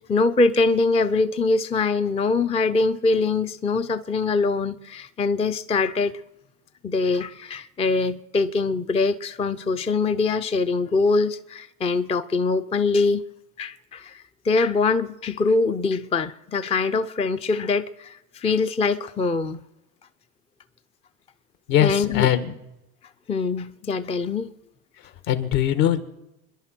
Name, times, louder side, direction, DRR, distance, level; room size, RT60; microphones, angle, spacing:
voice 1, 0.1-6.1 6.8-13.2 13.6-19.6 21.8-22.3 23.3-24.5, left 3 dB, 15° left, 0.5 m, -23 dB
voice 2, 21.7-22.5 25.3-26.0, left 11 dB, 60° left, 2.0 m, -21 dB
29.5 x 11.0 x 4.4 m
supercardioid pair, 105°, 50 cm